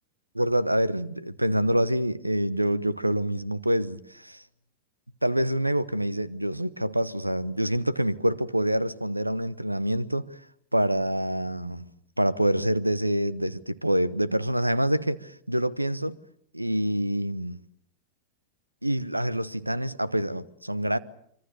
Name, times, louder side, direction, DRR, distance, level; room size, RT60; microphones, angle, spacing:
voice 1, 0.3-4.4 5.2-10.2 10.7-11.9 12.2-16.2 16.5-17.6 18.8-21.0, right 1 dB, 85° right, 1.0 m, -26 dB
25.0 x 25.0 x 6.7 m
figure-of-eight pair, 90°, 0 cm